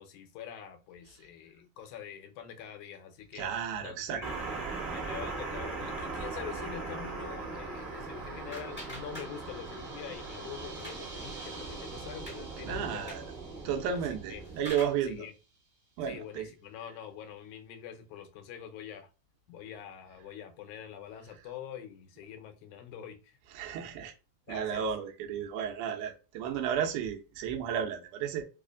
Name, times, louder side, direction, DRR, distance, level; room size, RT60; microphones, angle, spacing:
voice 1, 0.0-3.5 3.8-4.6 4.9-13.1 13.9-14.0 14.3-14.4 15.1-15.3 16.1-19.1 19.5-23.4 23.9-24.0 24.5-24.9, left 9 dB, 80° left, 1.9 m, -45 dB
voice 2, 3.4-4.2 12.6-13.2 13.6-15.3 16.0-16.5 23.5-24.1 24.5-28.4, right 8 dB, 80° right, 2.0 m, -33 dB
sound 1, 4.2-14.7, right 3 dB, 20° right, 1.0 m, -40 dB
sound 2, 7.2-15.6, right 3 dB, 50° right, 1.6 m, -51 dB
sound 3, 7.7-9.8 10.1-11.1 11.5-11.6 12.0-12.4 12.9-13.3 14.1-15.1, left 1 dB, 5° left, 0.9 m, -47 dB
4.9 x 2.4 x 2.4 m
omnidirectional pair, 3.7 m